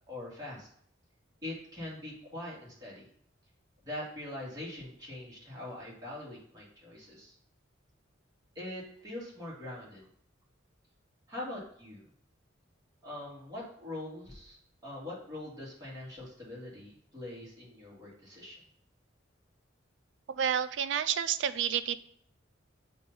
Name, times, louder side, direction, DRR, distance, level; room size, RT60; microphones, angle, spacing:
voice 1, 0.1-0.7 1.4-3.0 3.8-7.3 8.6-10.0 11.3-12.0 13.0-14.6 14.8-18.6, left 1 dB, 20° right, -6 dB, 2.3 m, -42 dB
voice 2, 20.3-21.9, right 9 dB, 65° right, 13 dB, 0.4 m, -30 dB
7.0 x 2.8 x 5.4 m, 0.63 s
head